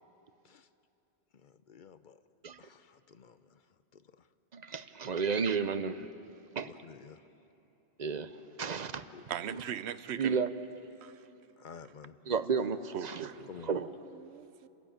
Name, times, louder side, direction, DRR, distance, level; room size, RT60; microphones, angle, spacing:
voice 1, 1.4-2.2 2.6-3.6 3.9-4.0 6.6-7.2 9.1-9.2 11.6-12.2 13.5-13.7, left 6 dB, 55° left, 13 dB, 0.8 m, -51 dB
voice 2, 4.5-6.1 6.6-6.7 8.0-9.0 9.5-9.6 10.1-10.5 12.3-13.3 13.6-13.9, right 5 dB, 45° right, 12 dB, 0.8 m, -32 dB
voice 3, 9.3-10.4 11.0-11.3 12.9-13.5 14.1-14.7, right 9 dB, 85° right, 15 dB, 1.0 m, -39 dB
30.0 x 14.0 x 8.9 m, 3.0 s
omnidirectional pair, 1.1 m